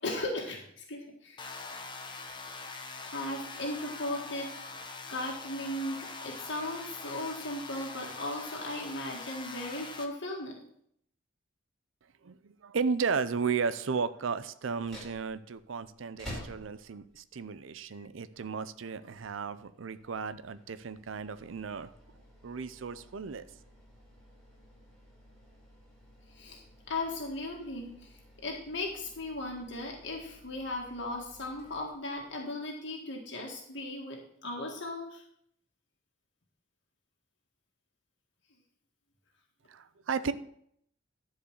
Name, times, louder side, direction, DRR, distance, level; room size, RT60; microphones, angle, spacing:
voice 1, 0.0-1.4 2.6-2.7 3.1-4.5 5.1-10.6 26.3-35.2, left 2 dB, 65° left, 0 dB, 1.8 m, -37 dB
sound 1, 1.4-10.0, left 3 dB, 25° left, 1.0 m, -43 dB
voice 2, 12.2-21.9 22.4-23.4 39.7-40.3, right 5 dB, 80° right, 13 dB, 0.5 m, -34 dB
sound 2, 14.7-32.5, equal, 5° left, 5.1 m, -53 dB
11.5 x 4.8 x 6.5 m, 0.68 s
head